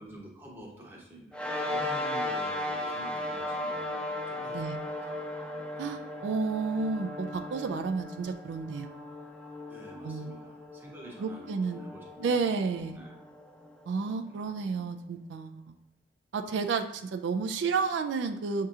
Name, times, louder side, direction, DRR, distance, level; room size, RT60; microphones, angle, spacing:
voice 1, 0.0-1.4 1.6-3.8 4.3-5.2 5.7-5.9 9.7-12.3 12.9-13.1 14.2-14.4, equal, 10° right, -2 dB, 0.7 m, -48 dB
sound 1, 1.3-14.1, left 1 dB, 5° left, 0.3 m, -37 dB
voice 2, 5.8-8.9 10.0-10.3 11.2-11.9 12.2-13.0 13.9-15.6 16.3-18.7, right 4 dB, 80° right, 6 dB, 0.3 m, -31 dB
6.5 x 2.7 x 2.4 m, 0.84 s
head